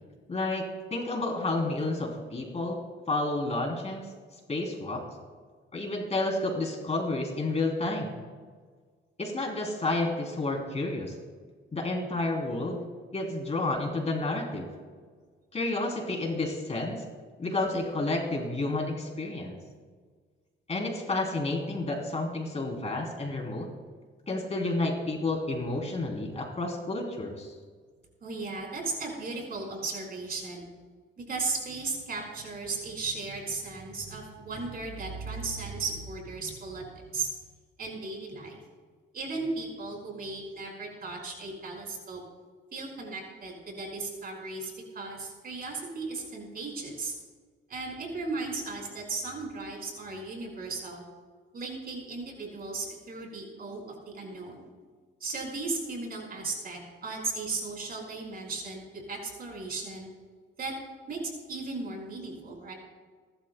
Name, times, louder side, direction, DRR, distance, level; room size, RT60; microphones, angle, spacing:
voice 1, 0.3-0.6 0.9-2.8 3.1-4.0 4.5-5.0 5.7-8.1 9.2-11.1 11.7-12.8 13.1-14.7 15.5-17.0 17.4-19.6 20.7-23.7 24.3-27.5, left 2 dB, 35° left, 1 dB, 3.3 m, -30 dB
voice 2, 28.2-30.7 31.2-37.3 37.8-38.6 39.1-42.2 42.7-47.1 47.7-51.1 51.5-54.7 55.2-60.1 60.6-60.7 61.1-61.2 61.5-62.7, right 3 dB, 50° right, 0 dB, 5.2 m, -36 dB
30.0 x 12.5 x 2.3 m, 1.5 s
cardioid pair, 90°, 20 cm